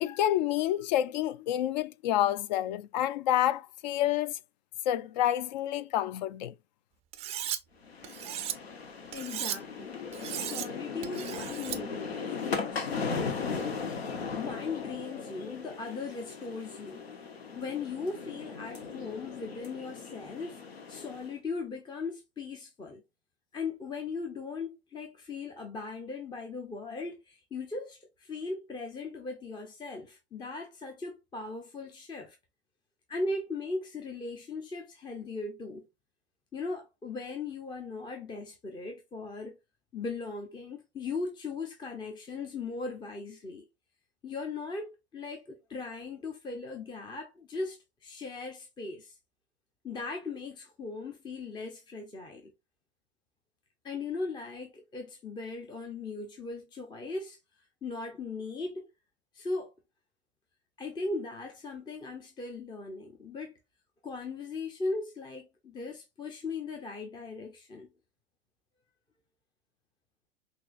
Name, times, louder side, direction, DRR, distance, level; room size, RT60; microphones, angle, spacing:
voice 1, 0.0-4.4 4.9-6.5, left 12 dB, 45° left, 0.4 m, -28 dB
Cutlery silverware, 7.1-7.6 8.0-8.5 9.1-9.6 10.1-10.7 11.0-11.8, right 11 dB, 20° right, 0.4 m, -36 dB
sound 1, 7.8-21.3, left 5 dB, 75° left, 0.9 m, -38 dB
voice 2, 9.1-10.0 10.3-13.8 14.3-17.0 17.6-23.0 23.5-32.4 33.1-35.8 36.5-39.6 39.9-43.7 44.2-49.1 49.8-52.5 53.8-57.4 57.8-58.9 59.3-59.7 60.8-63.6 64.0-67.9, left 3 dB, 15° left, 0.7 m, -38 dB
5.8 x 2.7 x 2.4 m
figure-of-eight pair, 90°, 31 cm